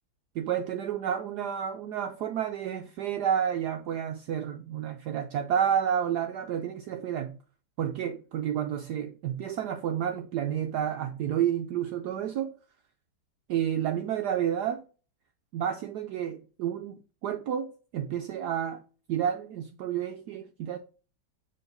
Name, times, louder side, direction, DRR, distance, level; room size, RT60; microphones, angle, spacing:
voice 1, 0.3-7.4 7.8-12.5 13.5-14.8 15.5-18.8 19.1-20.8, right 9 dB, 75° right, 0.9 m, -30 dB
6.8 x 3.9 x 3.9 m
omnidirectional pair, 2.2 m